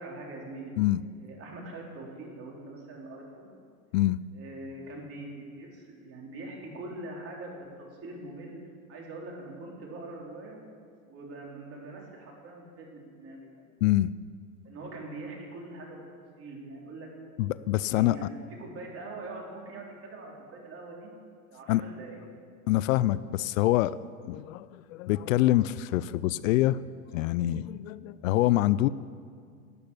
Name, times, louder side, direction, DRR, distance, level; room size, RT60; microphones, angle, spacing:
voice 1, 0.0-0.7 1.2-3.5 4.3-8.6 8.9-10.6 11.1-13.5 14.6-16.0 16.4-17.1 17.9-18.3 18.6-21.1 21.5-22.2, right 2 dB, 35° right, -1 dB, 3.9 m, -43 dB
voice 2, 13.8-14.1 17.4-18.2 21.7-21.8 22.7-24.0 24.2-26.8 27.1-28.9, left 15 dB, 70° left, 18 dB, 0.5 m, -25 dB
12.0 x 8.7 x 9.9 m, 2.1 s
hypercardioid pair, 115°, 42 cm